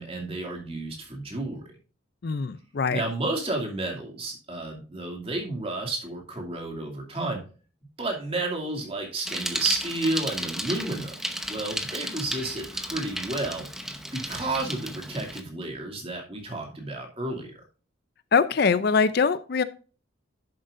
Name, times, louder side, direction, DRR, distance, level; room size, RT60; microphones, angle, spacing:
voice 1, 0.0-1.6 2.9-7.4 8.0-11.1 11.5-13.7 14.1-17.6, right 2 dB, 30° right, 1 dB, 2.4 m, -31 dB
voice 2, 2.2-3.0 18.3-19.6, left 5 dB, 50° left, 14 dB, 0.4 m, -23 dB
Bicycle, 9.2-15.4, equal, ahead, 0.7 m, -34 dB
10.5 x 7.7 x 2.5 m, 0.36 s
head